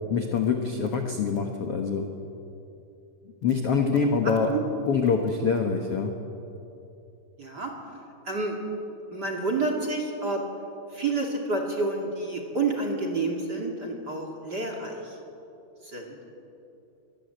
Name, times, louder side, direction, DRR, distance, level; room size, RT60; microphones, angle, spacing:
voice 1, 0.1-2.1 3.4-4.5 4.8-6.1, left 5 dB, 65° left, 4 dB, 1.5 m, -25 dB
voice 2, 7.4-7.7 8.3-8.6 9.1-10.4 10.9-15.1 15.9-16.1, right 3 dB, 30° right, 2 dB, 2.2 m, -29 dB
24.0 x 19.0 x 8.0 m, 2.8 s
omnidirectional pair, 4.5 m